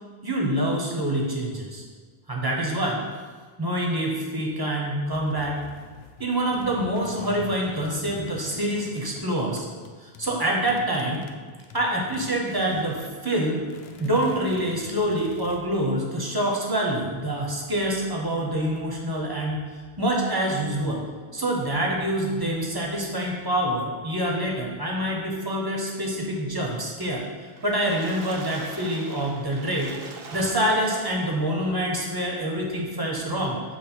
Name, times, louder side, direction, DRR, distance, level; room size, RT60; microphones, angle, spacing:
voice 1, 0.2-1.8 2.3-3.0 3.6-5.6 6.2-9.7 10.0-11.3 11.7-13.6 14.0-19.6 20.0-21.1 21.3-27.2 27.6-29.9 30.3-33.6, right 1 dB, 25° right, -2 dB, 0.8 m, -26 dB
sound 1, 5.1-13.1 13.4-15.6, left 6 dB, 75° left, 0.8 m, -45 dB
Water / Splash splatter, 27.4-31.3 31.8-31.9 32.2-32.3, right 3 dB, 65° right, 0.9 m, -42 dB
6.8 x 3.1 x 4.4 m, 1.5 s
omnidirectional pair, 1.1 m